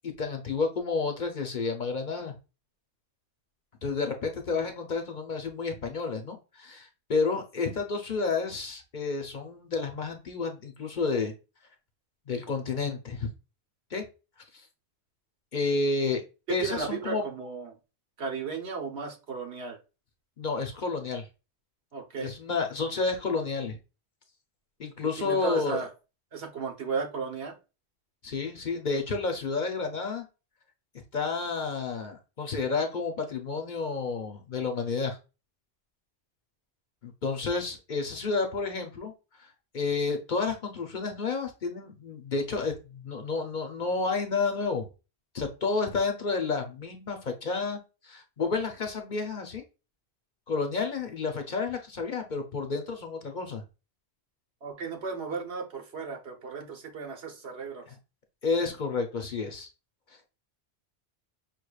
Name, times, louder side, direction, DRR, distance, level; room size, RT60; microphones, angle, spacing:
voice 1, 0.0-2.3 3.8-11.3 12.3-13.3 13.9-14.0 14.5-14.7 15.5-16.2 16.5-17.2 20.4-21.3 22.2-23.8 24.8-25.8 28.2-30.2 31.1-35.2 37.0-39.1 39.4-39.5 39.7-44.9 45.3-47.8 48.0-49.6 50.5-53.6 57.9-58.0 58.4-59.7, left 4 dB, 50° left, 4 dB, 0.8 m, -30 dB
voice 2, 16.5-17.7 18.2-19.8 21.9-22.3 25.2-25.9 26.3-27.5 54.6-57.9, right 5 dB, 70° right, 3 dB, 1.2 m, -34 dB
5.6 x 3.2 x 2.3 m, 0.30 s
omnidirectional pair, 1.1 m